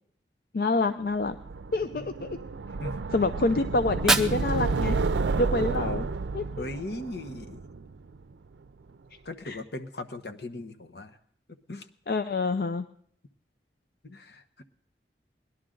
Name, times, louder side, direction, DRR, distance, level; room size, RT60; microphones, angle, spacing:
voice 1, 0.5-1.4 1.7-2.4 3.1-5.0 5.4-6.1 6.3-6.7 9.4-9.6 12.1-12.9, left 3 dB, 55° left, 9 dB, 0.5 m, -27 dB
sound 1, 1.3-8.3, right 4 dB, 90° right, 0.5 m, -31 dB
Fire, 3.8-5.8, right 2 dB, 5° right, 0.6 m, -30 dB
voice 2, 6.6-7.6 9.2-11.1 11.7-11.8 14.0-14.6, left 2 dB, 70° left, 7 dB, 1.0 m, -38 dB
18.5 x 11.5 x 3.8 m, 0.64 s
head